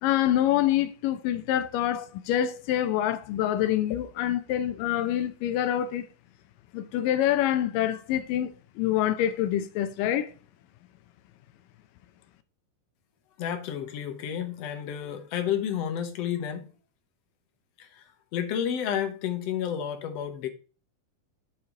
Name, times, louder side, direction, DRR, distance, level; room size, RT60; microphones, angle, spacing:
voice 1, 0.0-6.1 6.7-8.5 8.8-10.3, left 12 dB, 85° left, 2.3 m, -26 dB
voice 2, 13.4-16.7 17.8-18.0 18.3-20.5, left 9 dB, 65° left, 1.7 m, -31 dB
8.5 x 4.4 x 3.7 m
omnidirectional pair, 3.8 m